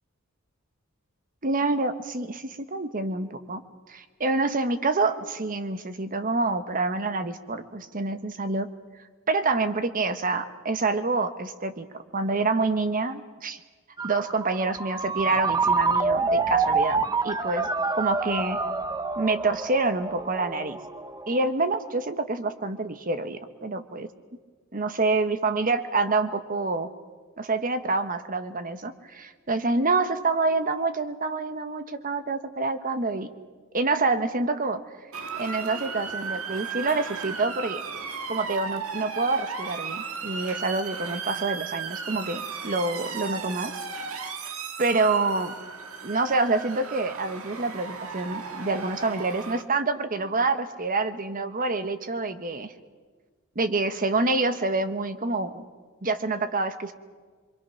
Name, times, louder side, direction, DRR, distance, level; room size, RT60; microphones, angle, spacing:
voice 1, 1.4-3.6 3.9-8.7 9.3-11.9 12.1-13.6 14.0-17.0 17.2-17.7 17.9-18.6 19.2-20.8 21.3-24.1 24.7-26.9 27.4-33.3 33.7-34.8 35.4-37.8 38.3-43.7 44.8-45.5 46.0-52.7 53.5-55.6 56.0-56.9, right 3 dB, 40° right, 9 dB, 1.2 m, -27 dB
Ringtone, 14.0-21.5, right 4 dB, 20° right, 0.8 m, -27 dB
Motor vehicle (road) / Siren, 35.1-49.6, right 5 dB, 80° right, 1.8 m, -35 dB
25.5 x 24.0 x 5.9 m, 1.5 s
head